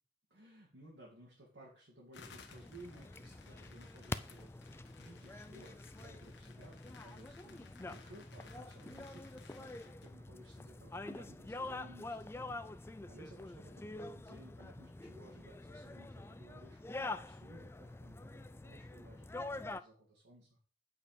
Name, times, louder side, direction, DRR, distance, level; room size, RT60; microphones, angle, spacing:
voice 1, 0.3-20.6, right 1 dB, 75° right, -5 dB, 2.6 m, -58 dB
sound 1, 2.1-10.1, left 6 dB, 70° left, 1.2 m, -60 dB
sound 2, 2.2-19.8, left 2 dB, 15° left, 0.3 m, -46 dB
8.8 x 5.1 x 5.2 m, 0.40 s
head